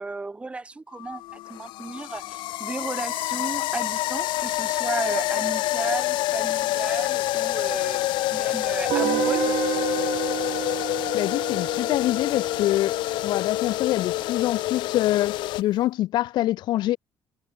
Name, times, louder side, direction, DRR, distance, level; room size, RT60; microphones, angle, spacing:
voice 1, 0.0-9.6, right 3 dB, 15° right, 4.7 m, -34 dB
sound 1, 1.0-15.6, left 17 dB, 85° left, 3.9 m, -27 dB
Guitar, 8.9-13.8, right 15 dB, 75° right, 4.1 m, -30 dB
voice 2, 11.1-17.0, left 15 dB, 70° left, 1.4 m, -25 dB
cardioid pair, 150°, 8 cm